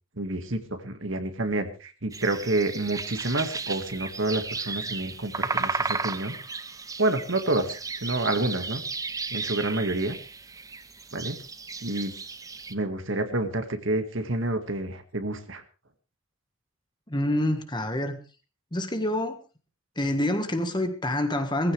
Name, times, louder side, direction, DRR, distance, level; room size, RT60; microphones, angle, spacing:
voice 1, 0.2-6.3 7.0-8.8 9.3-10.2 11.1-11.4 11.8-12.1 12.7-15.6, right 2 dB, 60° right, 2.0 m, -28 dB
sound 1, 2.1-12.7, right 4 dB, 15° right, 0.7 m, -34 dB
voice 2, 17.1-18.2 18.7-19.4 20.0-21.7, left 1 dB, 20° left, 1.6 m, -27 dB
20.0 x 15.5 x 3.4 m
head